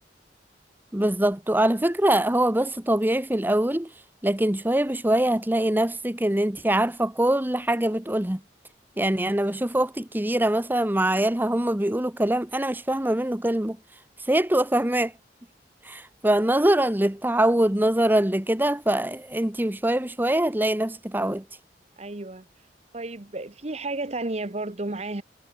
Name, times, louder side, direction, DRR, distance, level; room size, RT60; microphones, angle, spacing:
voice 1, 0.9-3.9 4.2-8.4 9.0-13.8 14.2-15.1 15.8-21.4, right 1 dB, 10° right, 1.0 m, -23 dB
voice 2, 22.0-22.5 22.9-25.2, right 2 dB, 40° right, 1.2 m, -32 dB
head